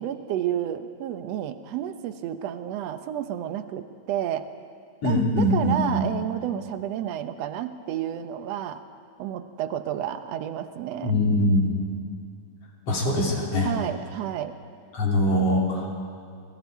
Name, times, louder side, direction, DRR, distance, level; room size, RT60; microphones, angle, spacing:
voice 1, 0.0-4.5 5.0-8.8 9.2-11.1 13.6-14.6 15.3-15.5, right 10 dB, 70° right, 9 dB, 1.9 m, -31 dB
voice 2, 5.0-6.0 11.0-11.8 12.9-13.7 14.9-15.9, left 1 dB, 55° left, -2 dB, 4.0 m, -22 dB
27.0 x 21.5 x 4.7 m, 2.3 s
omnidirectional pair, 3.3 m